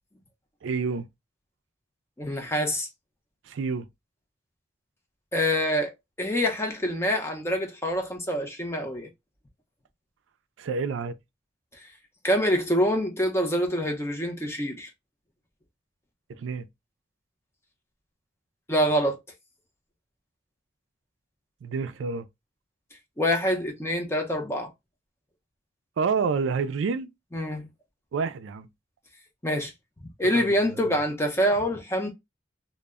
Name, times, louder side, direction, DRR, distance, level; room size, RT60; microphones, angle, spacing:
voice 1, 0.6-1.1 3.5-3.9 10.6-11.1 16.4-16.7 21.6-22.3 26.0-27.1 28.1-28.7 30.3-30.8, right 5 dB, 90° right, 0.4 m, -28 dB
voice 2, 2.2-2.9 5.3-9.1 12.2-14.9 18.7-19.2 23.2-24.7 27.3-27.7 29.4-29.7 30.2-32.1, equal, 15° left, 0.5 m, -26 dB
2.1 x 2.0 x 3.4 m
head